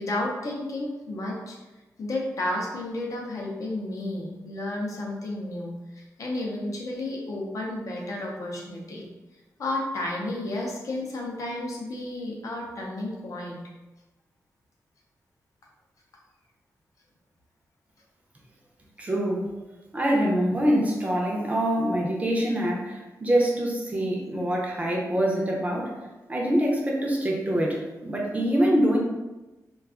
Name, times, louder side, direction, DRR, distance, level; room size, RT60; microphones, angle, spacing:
voice 1, 0.0-1.6 2.0-9.1 9.6-13.6, left 1 dB, 60° left, -1 dB, 0.5 m, -32 dB
voice 2, 19.0-19.5 19.9-25.9 26.3-29.0, equal, 20° right, -2 dB, 0.5 m, -25 dB
2.4 x 2.3 x 3.6 m, 1.1 s
wide cardioid pair, 180°, 6 cm